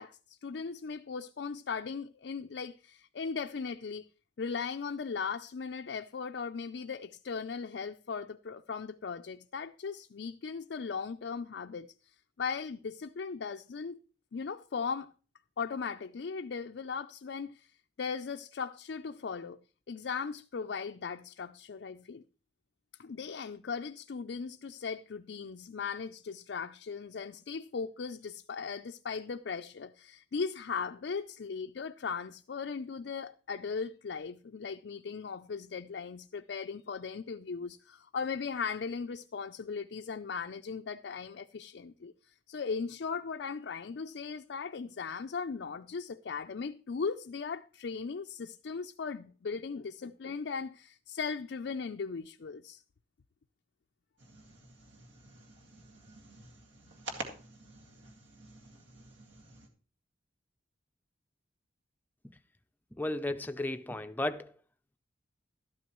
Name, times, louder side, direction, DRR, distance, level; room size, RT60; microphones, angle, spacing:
voice 1, 0.0-4.1 4.4-11.9 12.4-14.0 14.3-15.1 15.6-17.7 18.0-19.6 19.9-22.2 23.0-42.1 42.5-52.8, left 5 dB, 60° left, 0.4 m, -38 dB
sound 1, 54.2-59.7, right 2 dB, 70° right, 2.1 m, -48 dB
voice 2, 63.0-64.5, left 1 dB, 10° left, 0.5 m, -34 dB
13.0 x 12.0 x 3.0 m
head